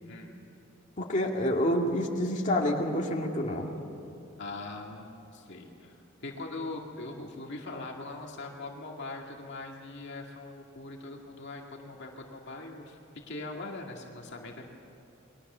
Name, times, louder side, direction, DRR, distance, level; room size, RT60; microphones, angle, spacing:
voice 1, 0.0-0.4 4.4-13.0 13.3-14.7, left 2 dB, 60° left, 1 dB, 2.2 m, -41 dB
voice 2, 1.0-3.7, left 1 dB, 35° left, -1 dB, 2.3 m, -28 dB
29.0 x 22.0 x 6.8 m, 2.9 s
head